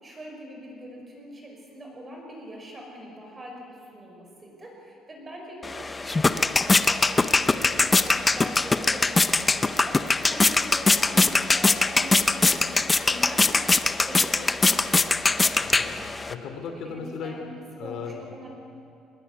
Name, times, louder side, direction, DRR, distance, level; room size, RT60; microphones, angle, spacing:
voice 1, 0.0-15.2 16.7-17.5 17.7-18.5, equal, 20° right, 1 dB, 5.4 m, -42 dB
sound 1, 5.6-16.3, left 3 dB, 15° left, 0.6 m, -22 dB
voice 2, 15.6-17.3 17.8-18.2, left 6 dB, 55° left, 5 dB, 2.7 m, -37 dB
23.5 x 21.0 x 9.4 m, 2.7 s
cardioid pair, 175°, 0 cm